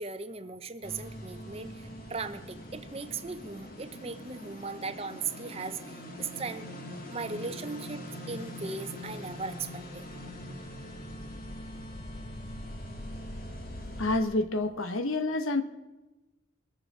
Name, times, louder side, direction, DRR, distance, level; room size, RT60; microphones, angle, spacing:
voice 1, 0.0-6.7 7.1-10.1, right 4 dB, 30° right, 9 dB, 0.7 m, -38 dB
sound 1, 0.8-14.2, left 1 dB, 45° left, 1.4 m, -42 dB
voice 2, 14.0-15.6, left 2 dB, 90° left, 9 dB, 1.1 m, -28 dB
23.0 x 7.7 x 4.9 m, 1.1 s
head